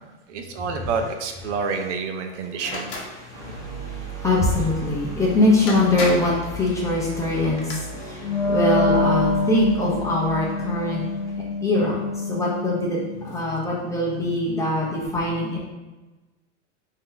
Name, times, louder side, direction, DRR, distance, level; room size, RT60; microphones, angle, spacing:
voice 1, 0.3-2.9, right 5 dB, 70° right, 5 dB, 0.7 m, -28 dB
sound 1, 2.6-3.1 5.2-5.3 5.7-6.4 7.3-7.7, left 2 dB, 35° left, 0.9 m, -31 dB
voice 2, 3.2-11.0 11.6-15.6, left 1 dB, 10° left, -5 dB, 0.5 m, -23 dB
sound 2, 3.3-11.4, right 1 dB, 50° right, 1.2 m, -37 dB
Wind instrument woodwind instrument, 8.2-13.3, left 3 dB, 60° left, 0.7 m, -25 dB
4.5 x 2.8 x 3.8 m, 1.1 s
supercardioid pair, 155°, 37 cm